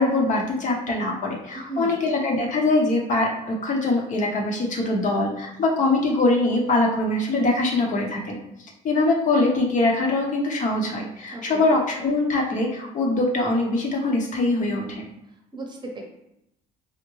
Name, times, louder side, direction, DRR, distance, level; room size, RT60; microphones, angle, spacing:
voice 1, 0.0-15.0, left 2 dB, 50° left, 0 dB, 0.7 m, -23 dB
voice 2, 1.5-2.0 11.3-11.7 15.5-16.0, right 2 dB, 25° right, 0 dB, 0.8 m, -35 dB
3.5 x 2.1 x 3.0 m, 0.84 s
cardioid pair, 110°, 17 cm